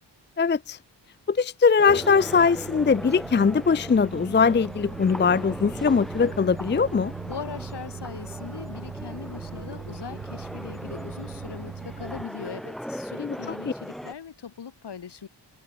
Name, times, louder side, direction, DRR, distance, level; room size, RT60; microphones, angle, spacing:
voice 1, 0.4-0.8 1.3-7.1 13.2-13.4 13.7-13.8, left 5 dB, 25° left, 0.5 m, -21 dB
sound 1, 1.8-14.1, equal, ahead, 2.9 m, -38 dB
Microwave oven, 1.9-12.2, right 6 dB, 45° right, 2.1 m, -40 dB
voice 2, 7.2-15.3, left 7 dB, 70° left, 4.4 m, -40 dB
wide cardioid pair, 170°, 43 cm